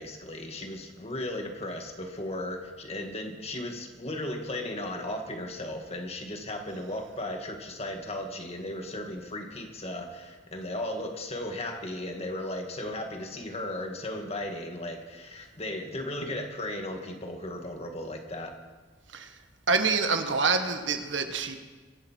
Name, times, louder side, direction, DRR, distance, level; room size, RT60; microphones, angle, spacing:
voice 1, 0.0-18.6, left 1 dB, 35° left, 3 dB, 1.9 m, -36 dB
voice 2, 19.7-21.6, right 4 dB, 80° right, 6 dB, 1.6 m, -26 dB
24.5 x 11.0 x 4.6 m, 1.4 s
head